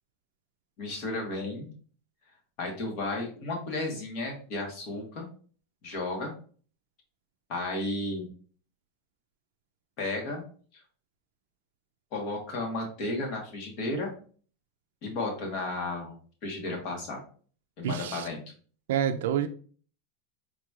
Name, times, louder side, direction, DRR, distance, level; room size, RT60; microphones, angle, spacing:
voice 1, 0.8-1.7 2.6-5.3 5.8-6.3 7.5-8.3 10.0-10.4 10.7-10.8 12.1-14.1 15.0-17.2 17.8-18.4, left 2 dB, 50° left, 1.3 m, -33 dB
voice 2, 17.8-18.3 18.9-19.5, right 9 dB, 75° right, 0.3 m, -28 dB
4.0 x 3.0 x 2.3 m
supercardioid pair, 145°, 0 cm